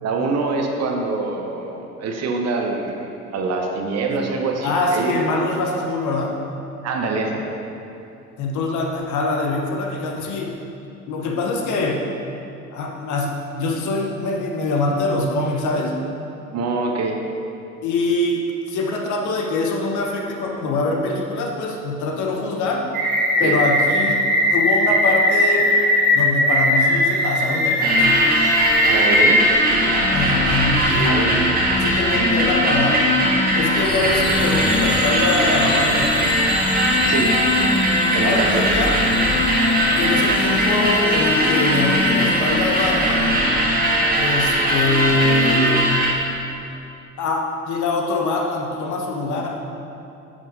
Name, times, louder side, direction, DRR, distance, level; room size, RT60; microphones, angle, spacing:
voice 1, 0.0-5.2 6.8-7.5 16.5-17.2 23.4-23.5 28.8-29.4 31.0-31.3 32.0-32.5 37.0-37.3 38.1-38.6, right 3 dB, 35° right, 2 dB, 0.8 m, -25 dB
voice 2, 4.6-6.4 8.4-10.5 11.1-12.0 12.7-15.9 17.8-22.9 23.4-24.2 24.5-25.8 26.1-28.2 30.1-31.1 31.8-33.0 33.5-36.4 38.2-39.0 40.0-43.3 44.1-45.8 47.2-49.6, left 2 dB, 40° left, 1 dB, 0.9 m, -23 dB
sound 1, 22.9-29.3, left 1 dB, 70° right, 1.6 m, -19 dB
sound 2, 27.8-46.1, equal, 20° right, 1.5 m, -19 dB
sound 3, 33.8-43.3, left 4 dB, 15° left, 0.4 m, -31 dB
10.5 x 6.0 x 2.7 m, 2.8 s
figure-of-eight pair, 60°, 44 cm